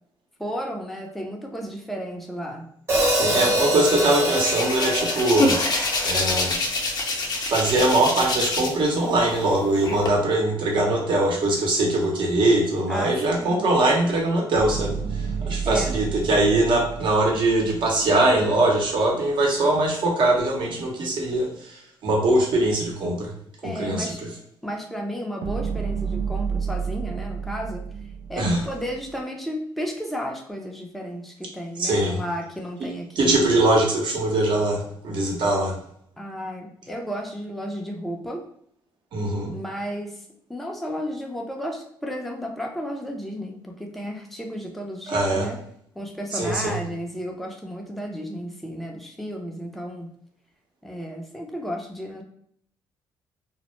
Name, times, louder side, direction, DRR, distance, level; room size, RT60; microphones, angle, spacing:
voice 1, 0.4-2.7 3.4-3.6 12.9-13.7 15.6-16.0 23.6-24.2 24.6-27.8 28.3-33.4 36.2-38.4 39.5-40.2 40.5-45.6 46.0-50.1 50.8-52.2, equal, ahead, 0 dB, 0.5 m, -33 dB
Hi-hat, 2.9-7.1, equal, 25° right, 0.8 m, -25 dB
voice 2, 3.2-5.6 6.0-6.5 7.5-15.0 15.4-21.8 22.0-23.3 23.6-24.1 28.4-28.6 31.8-32.2 33.2-35.8 39.1-39.5 45.1-45.5 46.3-46.8, right 2 dB, 60° right, -1 dB, 0.8 m, -22 dB
Hands, 3.9-8.9 9.2-10.1, left 2 dB, 50° left, 0.6 m, -26 dB
sound 1, 14.5-18.8 25.4-29.2, right 6 dB, 90° right, 0.4 m, -31 dB
2.1 x 2.0 x 3.0 m, 0.66 s
supercardioid pair, 75°, 9 cm